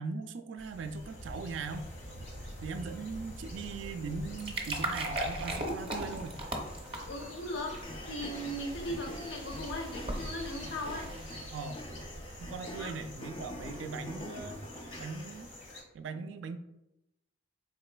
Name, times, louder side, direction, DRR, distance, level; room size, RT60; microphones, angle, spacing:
voice 1, 0.0-1.9 2.6-6.4 11.5-11.8 12.4-14.6 15.0-15.5 15.9-16.6, right 4 dB, 75° right, 9 dB, 0.3 m, -39 dB
sound 1, 0.6-15.8, equal, 85° left, 1.4 m, -46 dB
sound 2, 4.1-11.7, right 1 dB, 30° right, 0.6 m, -39 dB
voice 2, 7.1-7.7 8.1-11.1 12.8-12.9, equal, 70° left, 1 dB, 0.7 m, -38 dB
sound 3, 7.8-15.4, left 1 dB, 25° left, 0.4 m, -46 dB
3.9 x 3.6 x 2.2 m, 0.88 s
head